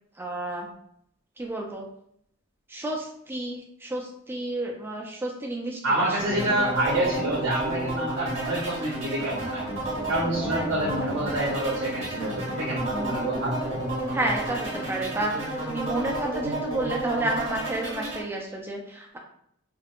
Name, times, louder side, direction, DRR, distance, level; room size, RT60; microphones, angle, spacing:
voice 1, 0.2-0.7 1.4-1.8 2.7-6.3 10.4-10.7 11.0-11.1 14.1-19.2, right 2 dB, 10° right, -1 dB, 0.3 m, -31 dB
voice 2, 5.8-9.6 10.1-13.6, right 1 dB, 55° right, -4 dB, 0.6 m, -27 dB
sound 1, 6.2-18.2, right 1 dB, 30° right, 0.9 m, -31 dB
sound 2, 9.1-16.2, left 1 dB, 40° left, 0.8 m, -41 dB
2.4 x 2.0 x 2.9 m, 0.70 s
head